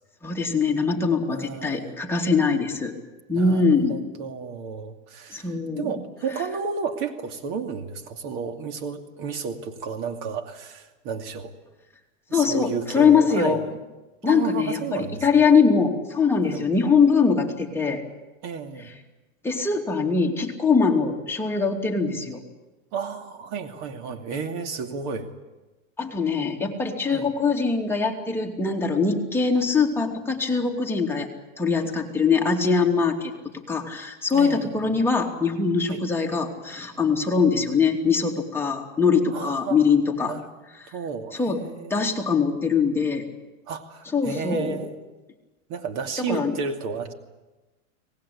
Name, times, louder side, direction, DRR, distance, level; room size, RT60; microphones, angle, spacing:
voice 1, 0.2-2.9 3.3-4.0 5.3-5.9 12.3-13.6 14.2-18.0 19.4-22.4 26.0-31.3 31.6-33.3 33.7-40.3 40.8-40.9 41.3-41.6 41.9-43.2 44.1-44.9 46.2-46.6, left 5 dB, 5° left, 0 dB, 2.8 m, -22 dB
voice 2, 1.3-2.0 3.3-5.5 5.8-11.5 12.3-13.6 14.2-15.2 16.5-16.6 18.4-18.9 22.9-25.3 27.1-27.3 34.3-34.9 35.9-36.0 39.3-39.8 40.2-40.5 40.9-42.2 43.7-44.9 45.7-47.1, right 5 dB, 50° right, 6 dB, 2.6 m, -32 dB
24.5 x 19.5 x 8.6 m, 1.1 s
supercardioid pair, 125°, 39 cm